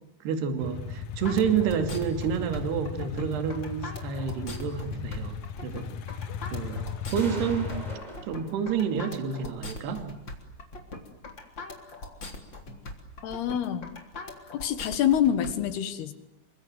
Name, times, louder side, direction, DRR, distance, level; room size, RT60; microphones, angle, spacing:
voice 1, 0.2-5.9 6.5-7.8 8.3-10.1, right 7 dB, 65° right, 7 dB, 4.5 m, -29 dB
sound 1, 0.6-8.0, left 7 dB, 90° left, 1.7 m, -37 dB
sound 2, 1.2-15.5, left 3 dB, 25° left, 3.6 m, -41 dB
sound 3, 3.6-3.7 6.5-6.6 7.1-8.9, right 1 dB, 10° right, 3.4 m, -41 dB
voice 2, 13.2-13.9 14.5-16.1, left 10 dB, 65° left, 12 dB, 3.3 m, -26 dB
28.0 x 25.0 x 7.9 m, 0.88 s
omnidirectional pair, 5.3 m